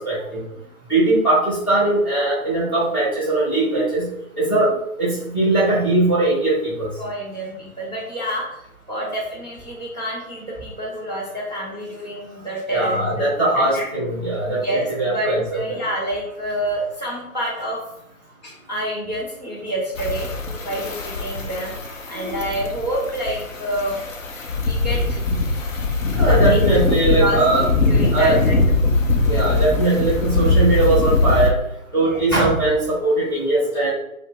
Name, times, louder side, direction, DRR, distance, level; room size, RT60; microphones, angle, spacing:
voice 1, 0.1-0.4 0.9-4.1 4.4-4.7 5.0-6.9 12.7-15.8 26.2-27.6 28.1-28.4 29.2-31.6 31.9-33.9, right 2 dB, 15° left, -8 dB, 0.8 m, -20 dB
voice 2, 7.0-13.9 14.5-17.8 18.4-24.1 24.6-26.0 26.3-26.6 27.2-27.4 27.9-28.6 29.0-29.1 32.0-32.2, right 1 dB, 30° right, -5 dB, 0.4 m, -28 dB
sound 1, 20.0-31.5, left 2 dB, 60° left, 0.6 m, -21 dB
2.6 x 2.0 x 3.4 m, 0.80 s
figure-of-eight pair, 145°, 43 cm